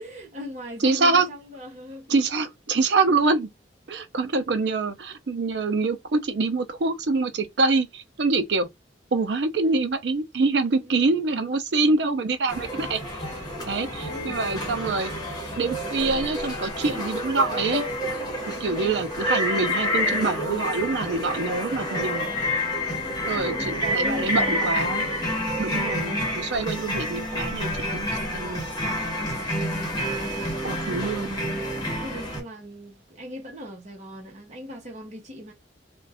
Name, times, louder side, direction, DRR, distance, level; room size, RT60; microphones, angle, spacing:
voice 1, 0.0-2.1 3.0-3.1 10.7-11.1 11.8-12.0 13.9-14.4 18.6-19.0 23.0-24.8 29.2-35.5, left 1 dB, 40° right, 1.0 m, -39 dB
voice 2, 0.8-1.3 2.1-3.5 3.9-8.7 9.1-13.0 13.7-15.1 15.6-17.8 18.5-22.3 23.3-25.1 25.6-28.7 30.6-31.4, right 3 dB, 75° right, 0.5 m, -25 dB
sound 1, 12.5-32.4, left 1 dB, 25° left, 1.1 m, -28 dB
2.4 x 2.3 x 3.4 m
head